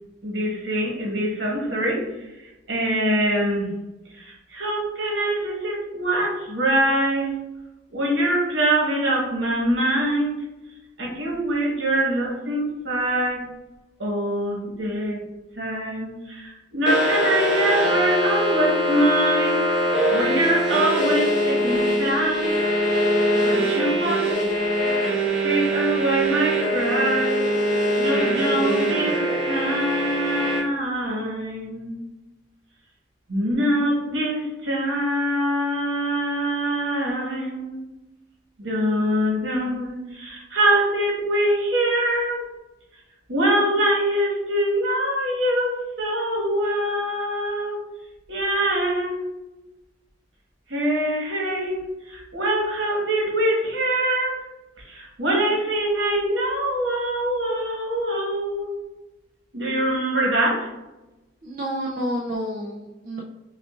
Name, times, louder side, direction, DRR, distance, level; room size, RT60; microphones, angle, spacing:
voice 1, 0.2-2.1 2.4-3.7 4.1-7.4 7.9-10.4 11.0-13.5 14.0-15.2 15.5-19.7 20.1-22.6 23.3-24.3 25.4-27.5 28.0-32.0 33.3-37.8 38.6-42.5 43.3-47.8 48.3-49.3 50.7-54.4 54.8-58.7 59.5-60.7, right 1 dB, 75° right, -3 dB, 1.3 m, -24 dB
sound 1, 16.9-30.6, equal, ahead, 1.2 m, -22 dB
voice 2, 61.4-63.2, equal, 45° right, -4 dB, 0.5 m, -29 dB
5.9 x 2.4 x 2.4 m, 1.0 s
head